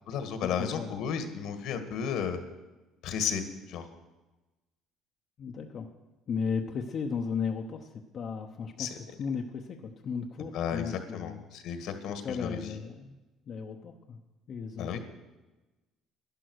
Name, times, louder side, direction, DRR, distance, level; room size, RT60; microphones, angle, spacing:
voice 1, 0.1-2.4 3.0-3.4 3.7-3.8 8.8-8.9 10.4-12.7 14.8-15.0, left 7 dB, 70° left, 8 dB, 1.7 m, -33 dB
voice 2, 0.6-0.9 5.4-5.9 6.3-11.4 12.1-13.2 13.5-14.2 14.5-15.0, left 6 dB, 45° left, 2 dB, 1.0 m, -35 dB
11.5 x 11.5 x 6.3 m, 1.1 s
cardioid pair, 115°, 0 cm